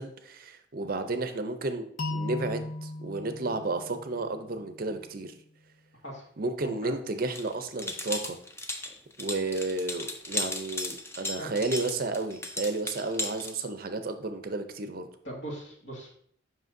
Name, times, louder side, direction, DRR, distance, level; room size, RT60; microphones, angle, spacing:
voice 1, 0.0-5.3 6.4-8.4 9.2-15.1, right 2 dB, 45° right, 8 dB, 0.5 m, -32 dB
sound 1, 2.0-4.9, left 2 dB, 40° left, 0.8 m, -37 dB
voice 2, 6.6-6.9 11.4-11.5 15.2-16.1, right 1 dB, 65° left, -3 dB, 2.1 m, -39 dB
sound 2, 7.3-13.5, left 2 dB, 15° left, 0.4 m, -35 dB
7.6 x 5.5 x 2.6 m, 0.63 s
head